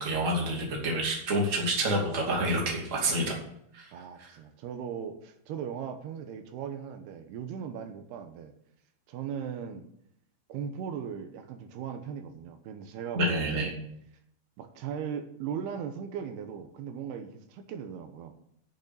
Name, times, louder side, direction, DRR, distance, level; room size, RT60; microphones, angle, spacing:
voice 1, 0.0-3.3 3.7-3.9 13.1-13.7, right 1 dB, 25° right, -2 dB, 2.3 m, -28 dB
voice 2, 3.9-8.5 9.1-9.9 10.5-13.7 14.6-18.3, right 7 dB, 80° right, 7 dB, 2.9 m, -38 dB
8.1 x 7.1 x 8.5 m, 0.72 s
omnidirectional pair, 4.6 m